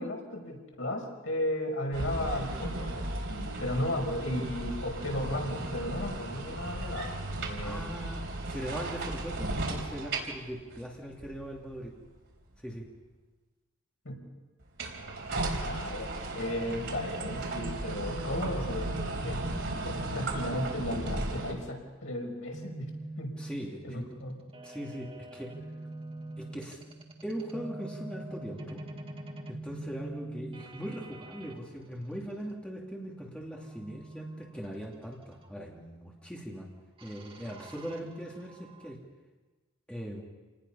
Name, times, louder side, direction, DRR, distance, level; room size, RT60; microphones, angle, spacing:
voice 1, 0.0-7.8 14.0-14.2 15.6-22.9 23.2-23.4 23.8-24.4, left 1 dB, 70° left, 0 dB, 5.4 m, -35 dB
sound 1, 1.9-12.2 14.6-21.5, right 2 dB, 65° right, 4.3 m, -35 dB
voice 2, 7.6-11.9 12.6-12.9 23.4-24.1 24.6-25.6 26.4-26.8 27.2-28.8 29.5-36.7 37.0-39.0 39.9-40.2, equal, 5° left, -2 dB, 2.7 m, -40 dB
sound 2, 22.5-31.6 33.5-35.5 37.0-38.9, right 2 dB, 25° right, 1.8 m, -45 dB
28.5 x 19.5 x 5.6 m, 1.2 s
head